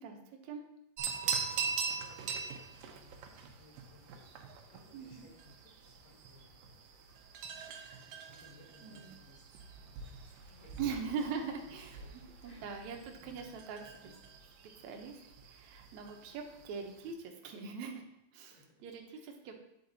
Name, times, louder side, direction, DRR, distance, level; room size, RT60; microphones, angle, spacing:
voice 1, 1.0-3.3 3.6-4.4 4.7-6.6 7.9-9.6 10.0-10.8 11.1-12.9 13.2-14.2 18.5-18.7 19.1-19.3, left 2 dB, 80° left, -2 dB, 3.8 m, -62 dB
sound 1, 1.0-17.1, right 6 dB, 90° right, 2.6 m, -43 dB
voice 2, 4.9-5.3 7.7-8.2 8.8-9.1 10.8-14.1 14.8-15.2 15.4-18.0 18.3-19.5, right 6 dB, 70° right, 3 dB, 2.1 m, -42 dB
9.7 x 4.7 x 4.0 m, 0.83 s
omnidirectional pair, 3.8 m